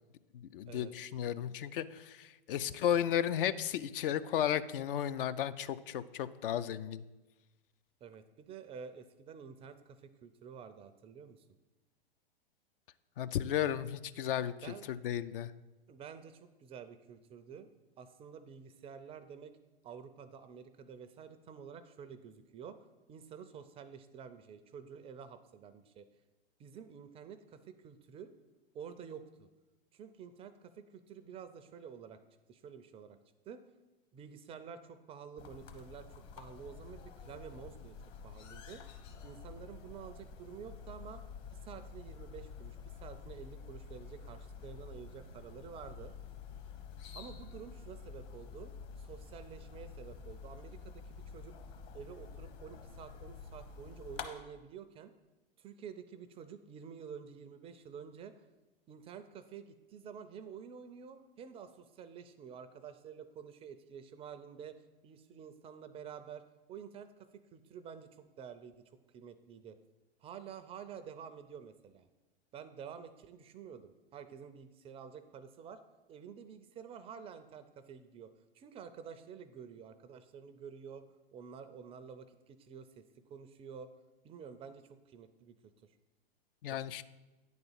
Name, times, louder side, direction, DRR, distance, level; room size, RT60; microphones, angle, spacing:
voice 1, 0.5-7.0 13.2-14.5 14.9-15.5 86.6-87.0, left 10 dB, 65° left, 14 dB, 0.5 m, -34 dB
voice 2, 2.6-3.0 8.0-11.4 14.6-14.9 15.9-17.7 18.0-19.5 19.8-22.8 23.1-26.1 26.6-28.3 28.7-29.5 29.9-32.2 32.5-33.2 33.5-33.6 34.1-36.1 36.4-37.9 38.2-38.8 39.2-41.2 41.5-46.1 47.1-51.6 51.9-55.1 55.6-58.5 58.9-64.8 65.0-66.4 66.7-68.7 69.1-69.8 70.2-72.1 72.5-75.8 76.1-78.3 78.5-81.0 81.3-83.9 84.2-85.9 86.7-87.0, right 7 dB, 20° right, 10 dB, 0.4 m, -50 dB
sound 1, 35.4-54.3, left 5 dB, 40° left, 1.0 m, -49 dB
9.3 x 4.0 x 7.2 m, 1.1 s
hypercardioid pair, 110°, 30 cm